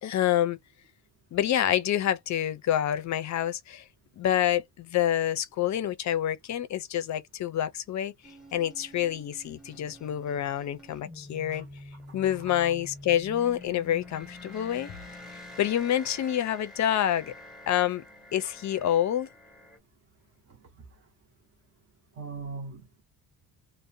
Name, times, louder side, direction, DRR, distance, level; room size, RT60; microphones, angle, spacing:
voice 1, 0.0-0.6 1.3-3.8 4.2-8.1 8.5-11.7 12.1-14.9 15.6-17.3 17.7-18.0 18.3-19.3, left 11 dB, 45° left, 0.4 m, -27 dB
sound 1, 8.2-19.8, left 1 dB, ahead, 0.8 m, -47 dB
voice 2, 22.2-23.0, right 4 dB, 40° right, 0.6 m, -40 dB
2.5 x 2.1 x 2.6 m
cardioid pair, 170°, 41 cm